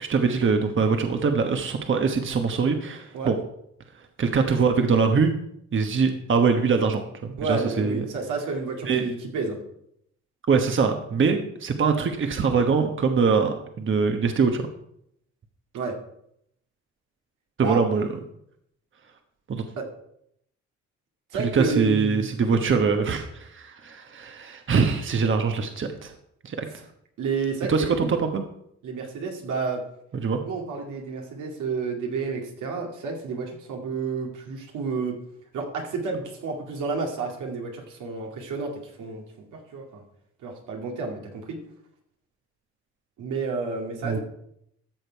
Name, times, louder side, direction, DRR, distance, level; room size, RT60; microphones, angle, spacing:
voice 1, 0.0-3.3 4.2-5.3 5.7-8.1 8.8-9.1 10.5-14.7 17.6-18.1 19.5-19.6 21.3-26.1 26.4-26.7 27.7-28.4 30.1-30.4 44.0-44.2, right 5 dB, 40° right, 5 dB, 1.2 m, -23 dB
voice 2, 7.4-9.6 15.7-16.0 17.6-17.8 19.8-19.9 21.3-22.3 27.2-28.2 28.8-29.8 30.5-35.2 35.5-39.3 39.5-40.0 40.4-41.6 43.2-44.2, right 4 dB, 85° right, 1 dB, 2.4 m, -30 dB
13.5 x 6.7 x 4.6 m, 0.74 s
cardioid pair, 90°, 30 cm